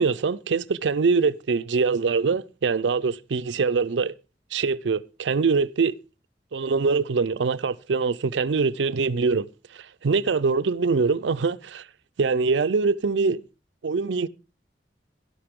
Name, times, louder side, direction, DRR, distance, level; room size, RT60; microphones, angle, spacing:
voice 1, 0.0-4.1 4.5-5.9 6.5-9.5 9.7-11.9 12.2-13.4 13.8-14.3, right 4 dB, 85° right, 0.5 m, -23 dB
12.0 x 11.5 x 3.6 m
head